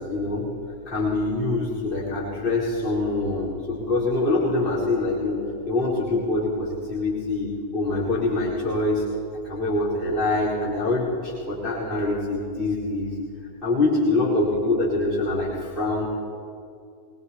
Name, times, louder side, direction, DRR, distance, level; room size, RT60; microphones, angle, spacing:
voice 1, 0.1-0.5 0.9-9.0 9.4-13.2 13.6-16.1, left 2 dB, 25° left, -8 dB, 4.2 m, -24 dB
23.5 x 19.5 x 2.9 m, 2.4 s
figure-of-eight pair, 90°, 0 cm